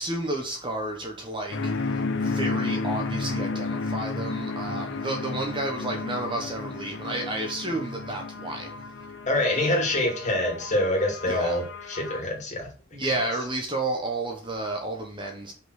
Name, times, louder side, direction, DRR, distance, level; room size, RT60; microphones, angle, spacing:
voice 1, 0.0-8.7 11.2-11.6 12.9-15.5, right 2 dB, 20° right, 1.3 m, -31 dB
sound 1, 1.5-12.2, left 3 dB, 55° left, 0.9 m, -32 dB
voice 2, 9.3-13.0, left 1 dB, 30° left, 2.8 m, -26 dB
5.8 x 5.5 x 6.5 m
head